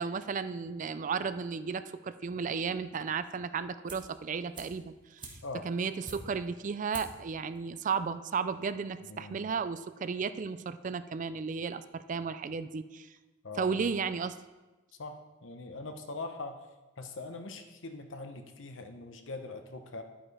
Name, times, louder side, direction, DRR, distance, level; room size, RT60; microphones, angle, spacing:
voice 1, 0.0-5.4 5.6-13.1 13.6-14.4, right 5 dB, 40° right, 13 dB, 0.4 m, -34 dB
sound 1, 3.9-4.2 4.5-6.5 6.9-7.3 7.6-7.7, right 3 dB, 25° right, 1.5 m, -46 dB
voice 2, 9.0-9.5 13.4-13.9 15.0-16.6 17.0-20.0, left 3 dB, 85° left, 6 dB, 0.9 m, -42 dB
11.0 x 8.8 x 3.4 m, 1.1 s
head